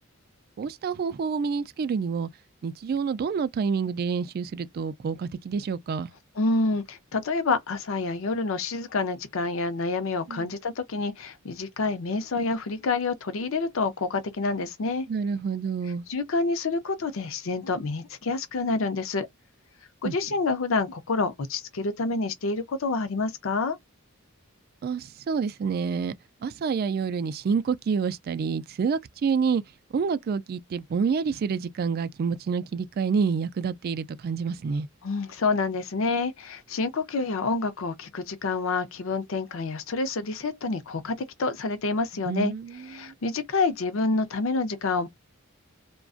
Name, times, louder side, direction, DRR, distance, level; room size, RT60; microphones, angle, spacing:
voice 1, 0.6-2.3 2.6-6.1 10.3-10.5 15.1-16.0 20.0-20.1 24.8-26.2 26.4-29.6 29.9-34.9 42.3-42.7 43.0-43.1, right 5 dB, 45° right, 0.3 m, -28 dB
voice 2, 6.4-15.1 16.1-19.3 20.0-23.8 35.0-42.5 42.8-45.1, left 3 dB, 70° left, 0.5 m, -28 dB
2.5 x 2.2 x 2.3 m
head